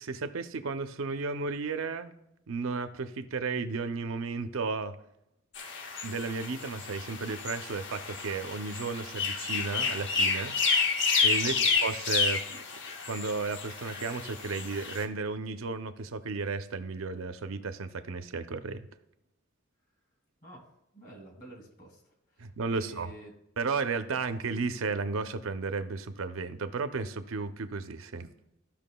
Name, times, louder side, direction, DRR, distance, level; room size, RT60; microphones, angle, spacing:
voice 1, 0.0-2.1 2.5-5.0 6.0-10.6 11.2-12.6 13.1-18.8 22.4-23.1 23.6-28.3, right 4 dB, 85° right, 0.6 m, -33 dB
sound 1, 5.6-15.0, left 4 dB, 60° left, 0.8 m, -30 dB
voice 2, 11.3-11.7 20.4-20.7 20.9-22.0 22.3-23.3 24.1-24.2, right 1 dB, 45° left, 2.3 m, -49 dB
14.5 x 5.8 x 2.3 m
head